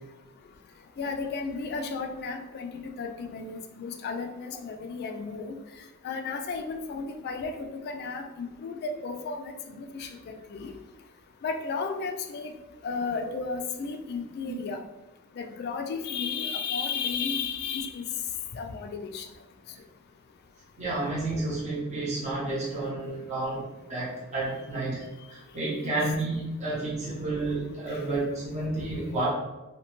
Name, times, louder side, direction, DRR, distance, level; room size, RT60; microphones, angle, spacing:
voice 1, 1.0-5.5 6.0-10.7 11.4-12.5 12.8-14.8 15.4-18.0 18.5-19.3 25.8-26.0 27.9-28.0, left 5 dB, 50° left, 5 dB, 0.3 m, -33 dB
voice 2, 20.8-29.3, right 2 dB, 35° right, -7 dB, 0.8 m, -31 dB
2.8 x 2.2 x 2.9 m, 1.0 s
head